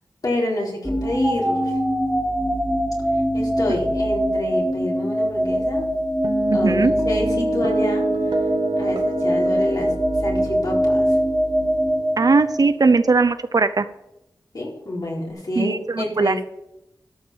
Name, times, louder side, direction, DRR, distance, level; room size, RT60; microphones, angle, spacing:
voice 1, 0.2-1.8 3.3-5.8 6.5-8.1 8.7-9.9 10.2-11.2 14.5-16.4, left 2 dB, 55° left, -3 dB, 4.3 m, -28 dB
sound 1, 0.8-12.9, equal, 5° right, 2.8 m, -22 dB
sound 2, 6.2-12.8, right 4 dB, 85° right, 1.6 m, -30 dB
voice 2, 6.5-6.9 12.2-13.9 15.6-16.3, right 4 dB, 55° right, 12 dB, 0.7 m, -19 dB
12.5 x 5.9 x 7.2 m, 0.84 s
wide cardioid pair, 70°, 8 cm